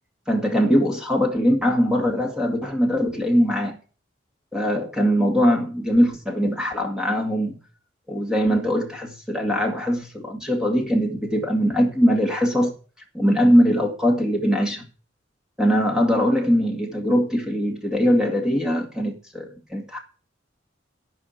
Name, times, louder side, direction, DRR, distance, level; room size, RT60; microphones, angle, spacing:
voice 1, 0.3-3.8 4.5-7.6 8.1-12.8 13.1-14.8 15.6-20.0, equal, 5° right, 2.2 m, -21 dB
14.0 x 5.8 x 7.4 m
head